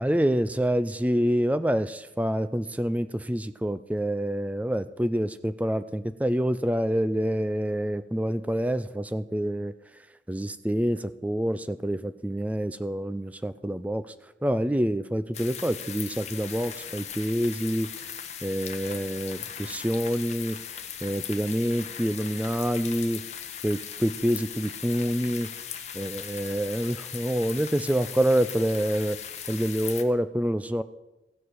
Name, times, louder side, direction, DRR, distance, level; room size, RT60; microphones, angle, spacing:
voice 1, 0.0-9.7 10.3-14.0 14.4-17.9 18.4-20.6 21.0-23.2 23.6-25.5 25.9-29.2 29.5-30.8, equal, 10° right, 12 dB, 0.4 m, -27 dB
sound 1, 15.3-30.0, left 8 dB, 40° left, 1.0 m, -39 dB
15.5 x 7.5 x 6.4 m, 1.0 s
head